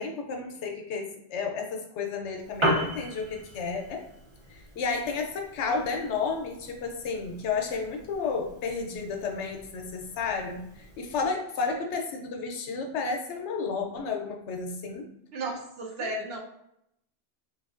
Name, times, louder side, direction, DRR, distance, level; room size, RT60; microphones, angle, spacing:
voice 1, 0.0-4.1 4.5-15.1 16.0-16.1, left 4 dB, 75° left, 3 dB, 0.9 m, -32 dB
Piano, 2.3-11.3, equal, 40° right, 0.4 m, -37 dB
voice 2, 15.3-16.4, right 2 dB, 65° right, 0 dB, 0.8 m, -34 dB
3.3 x 2.6 x 2.4 m, 0.76 s
omnidirectional pair, 1.2 m